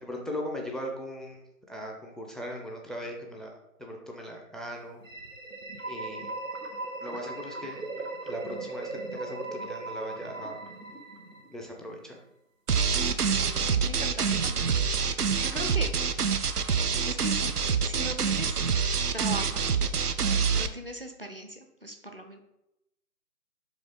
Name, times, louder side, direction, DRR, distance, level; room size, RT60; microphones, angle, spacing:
voice 1, 0.0-3.5 3.8-5.0 5.9-6.3 7.0-7.8 8.3-10.6 11.5-12.2, equal, ahead, 0 dB, 0.5 m, -38 dB
sound 1, 5.0-11.8, right 2 dB, 55° right, 1.3 m, -38 dB
sound 2, 12.7-20.7, right 6 dB, 75° right, 0.7 m, -26 dB
voice 2, 13.3-16.1 17.0-17.6 17.8-18.7 19.1-19.8 20.5-22.4, equal, 35° right, 4 dB, 0.7 m, -39 dB
6.1 x 4.8 x 3.9 m, 0.85 s
figure-of-eight pair, 170°, 46 cm